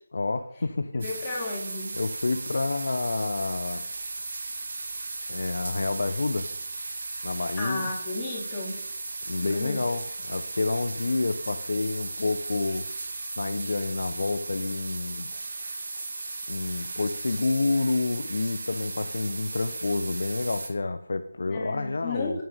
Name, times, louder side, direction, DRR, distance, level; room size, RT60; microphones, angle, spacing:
voice 1, 0.1-1.4 1.9-3.8 5.3-6.5 7.2-7.9 9.3-12.9 13.4-15.3 16.5-22.4, left 3 dB, 55° left, 8 dB, 1.1 m, -29 dB
voice 2, 1.0-1.9 7.6-8.8 9.4-9.8 21.5-22.4, left 3 dB, 15° left, -4 dB, 4.0 m, -33 dB
sound 1, 1.0-20.7, right 3 dB, 40° right, 3.1 m, -36 dB
21.5 x 9.3 x 5.4 m, 0.69 s
figure-of-eight pair, 160°, 0 cm